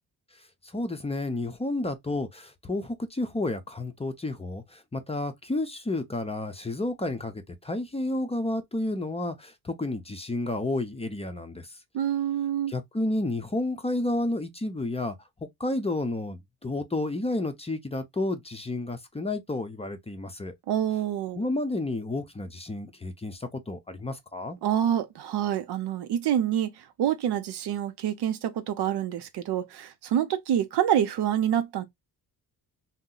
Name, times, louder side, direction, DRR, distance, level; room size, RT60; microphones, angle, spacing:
voice 1, 0.7-11.7 12.7-15.2 15.6-20.5 21.4-24.6, left 2 dB, 15° left, 0.5 m, -31 dB
voice 2, 11.9-12.7 20.7-21.4 24.6-26.7 27.0-31.8, right 10 dB, 80° right, 0.7 m, -27 dB
2.7 x 2.1 x 3.8 m
cardioid pair, 100°, 39 cm